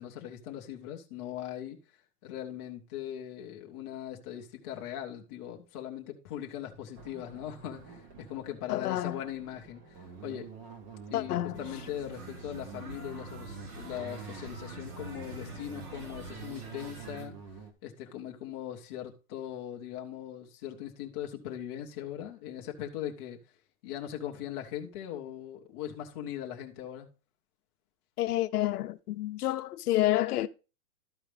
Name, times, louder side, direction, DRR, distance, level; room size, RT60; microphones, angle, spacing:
voice 1, 0.0-1.8 2.2-10.5 11.1-17.4 17.8-23.4 23.8-27.1, left 11 dB, 20° left, 0.5 m, -40 dB
sound 1, 7.0-17.7, right 4 dB, 25° right, 0.6 m, -47 dB
voice 2, 8.7-9.2 11.1-11.6 28.2-30.5, left 15 dB, 85° left, 0.7 m, -29 dB
sound 2, 11.5-17.2, right 3 dB, 75° right, 3.7 m, -47 dB
12.5 x 4.9 x 3.2 m
supercardioid pair, 165°, 44 cm